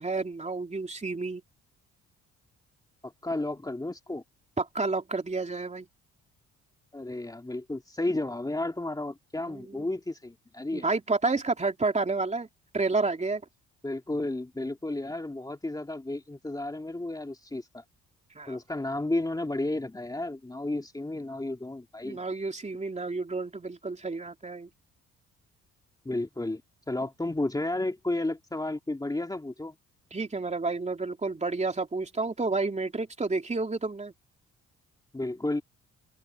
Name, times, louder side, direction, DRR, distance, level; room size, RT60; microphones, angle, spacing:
voice 1, 0.0-1.4 4.6-5.9 9.4-9.8 10.7-12.5 12.7-13.4 18.3-18.6 22.0-24.7 30.1-34.1, right 3 dB, 25° right, 3.2 m, -30 dB
voice 2, 3.0-4.2 6.9-10.8 13.8-17.8 18.5-22.2 26.0-26.6 26.9-29.7 35.1-35.6, left 2 dB, 10° left, 2.5 m, -32 dB
open air
cardioid pair, 90°, 30 cm